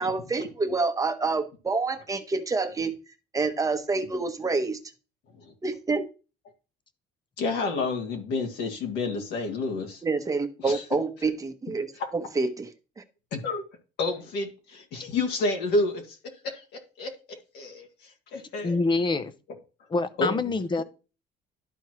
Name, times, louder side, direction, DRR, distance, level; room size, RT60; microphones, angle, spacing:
voice 1, 0.0-2.9 3.3-4.8 5.6-6.0 10.0-11.9 12.1-12.7 13.0-13.1, right 3 dB, 20° right, 1.1 m, -27 dB
voice 2, 7.4-10.0 10.6-11.0 12.0-12.1 13.3-13.6 14.0-16.2 16.4-17.1 17.5-17.9 18.3-18.8 20.2-20.4, left 3 dB, 80° left, 2.0 m, -29 dB
voice 3, 18.6-19.3 19.9-20.8, left 3 dB, 25° left, 0.8 m, -25 dB
12.0 x 4.5 x 3.1 m
cardioid pair, 110°, 17 cm